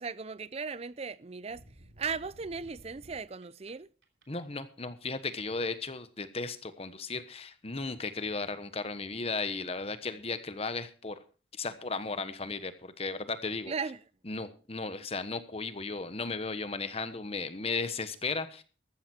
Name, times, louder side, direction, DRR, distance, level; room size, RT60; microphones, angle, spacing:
voice 1, 0.0-1.6 2.0-3.9 13.7-14.0, right 5 dB, 35° right, 0.5 m, -37 dB
sound 1, 1.5-3.7 4.0-4.5, equal, 75° right, 3.0 m, -55 dB
voice 2, 4.3-11.2 11.6-13.7 14.3-18.6, left 3 dB, 35° left, 1.2 m, -35 dB
14.5 x 12.5 x 4.4 m
head